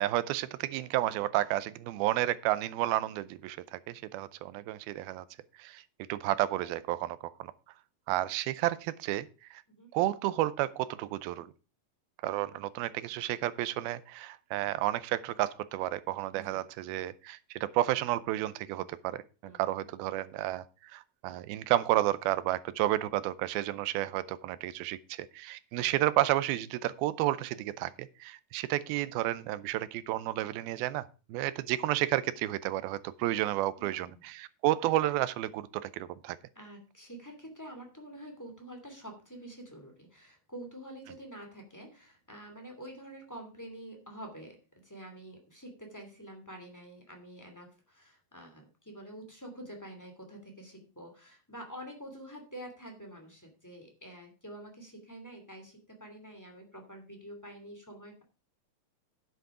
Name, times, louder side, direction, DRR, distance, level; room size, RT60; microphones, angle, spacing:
voice 1, 0.0-5.2 5.6-5.8 6.1-7.3 8.1-9.6 9.9-11.5 12.2-20.6 20.9-36.4, right 15 dB, 90° right, 16 dB, 2.6 m, -31 dB
voice 2, 16.3-16.6 19.4-19.9 33.8-34.2 36.5-58.2, right 1 dB, 5° left, 2 dB, 2.0 m, -47 dB
10.5 x 8.0 x 4.9 m, 0.33 s
omnidirectional pair, 4.3 m